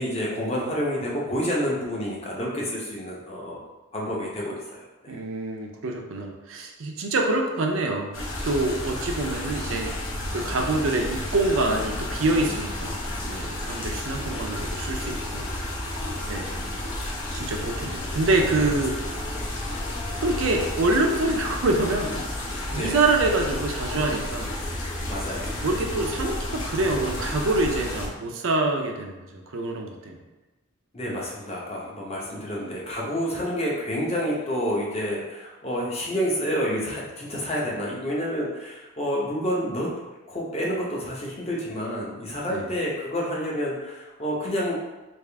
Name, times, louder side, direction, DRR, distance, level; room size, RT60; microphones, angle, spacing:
voice 1, 0.0-3.6 3.9-5.1 18.6-18.7 22.7-23.0 25.1-25.5 30.9-39.9 40.3-44.7, equal, 30° left, -4 dB, 0.8 m, -29 dB
voice 2, 5.1-8.2 8.4-9.9 10.3-13.0 13.2-15.4 16.3-16.6 17.3-19.0 20.2-22.3 22.7-24.5 25.6-30.2 42.5-42.7, right 2 dB, 65° right, 2 dB, 0.5 m, -26 dB
sound 1, 8.1-28.1, left 1 dB, 65° left, 0.8 m, -31 dB
3.5 x 2.4 x 3.3 m, 1.1 s
head